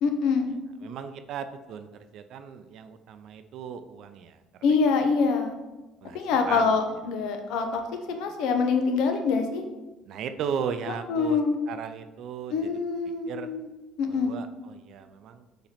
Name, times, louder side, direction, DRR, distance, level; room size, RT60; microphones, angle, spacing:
voice 1, 0.0-0.5 4.6-5.5 6.1-7.8 8.1-9.6 10.9-11.6 12.5-13.7 14.0-14.3, left 5 dB, 75° left, 5 dB, 0.6 m, -25 dB
voice 2, 0.8-4.4 6.0-6.8 10.1-11.4 11.7-12.7 13.3-13.5 14.1-15.5, right 7 dB, 65° right, 9 dB, 0.4 m, -36 dB
4.3 x 2.9 x 4.0 m, 1.1 s
cardioid pair, 100°, 0 cm